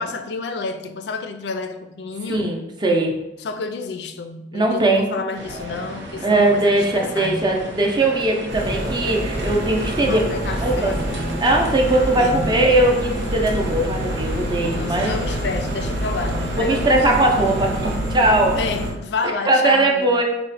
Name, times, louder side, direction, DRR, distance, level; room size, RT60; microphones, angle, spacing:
voice 1, 0.0-2.5 3.4-7.8 10.0-11.4 12.2-12.6 14.7-17.0 18.5-20.2, left 3 dB, 70° left, 7 dB, 0.4 m, -30 dB
voice 2, 2.3-3.2 4.5-5.2 6.2-10.2 10.6-10.9 11.4-15.1 16.6-18.6 19.5-20.2, right 2 dB, 25° right, 1 dB, 0.5 m, -19 dB
sound 1, 5.3-18.0, right 1 dB, 90° right, 0.7 m, -34 dB
sound 2, 8.5-18.9, equal, 50° right, 0.8 m, -27 dB
4.0 x 2.1 x 4.0 m, 0.98 s
head